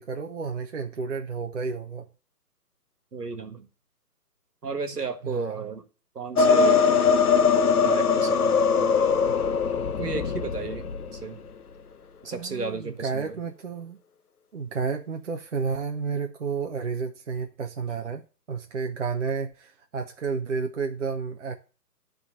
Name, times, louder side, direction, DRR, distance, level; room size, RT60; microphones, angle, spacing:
voice 1, 0.0-2.1 5.2-5.6 12.3-14.0 14.5-18.2 18.5-21.5, right 5 dB, 50° right, 0.8 m, -31 dB
voice 2, 3.1-3.7 4.6-5.8 6.2-7.1 7.7-9.2 10.0-11.4 12.2-13.4, right 4 dB, 70° right, 1.8 m, -34 dB
sound 1, 6.4-11.2, left 5 dB, 65° left, 0.9 m, -21 dB
10.5 x 3.9 x 7.1 m
figure-of-eight pair, 145°, 48 cm